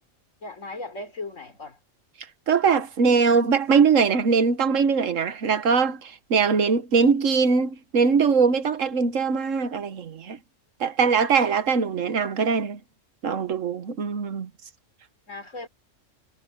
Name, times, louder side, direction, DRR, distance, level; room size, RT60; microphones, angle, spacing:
voice 1, 0.4-1.8 15.3-15.7, left 2 dB, 70° left, 4.4 m, -37 dB
voice 2, 2.5-10.4 10.8-12.8 13.2-14.5, right 5 dB, 75° right, 1.5 m, -21 dB
omnidirectional pair, 1.4 m